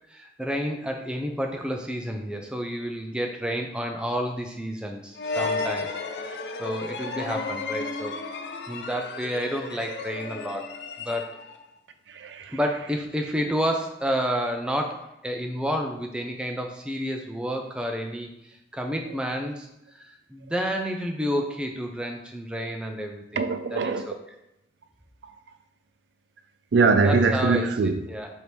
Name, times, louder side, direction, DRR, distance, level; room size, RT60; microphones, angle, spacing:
voice 1, 0.1-5.9 6.2-8.2 8.7-10.7 11.0-11.4 12.5-24.2 27.0-27.7 28.1-28.3, equal, 5° right, 0.4 m, -30 dB
sound 1, 5.2-11.6, left 4 dB, 75° left, 0.4 m, -33 dB
voice 2, 12.1-12.6 23.4-24.1 25.2-25.3 26.7-28.1, right 4 dB, 80° right, 0.4 m, -22 dB
3.3 x 2.7 x 4.4 m
head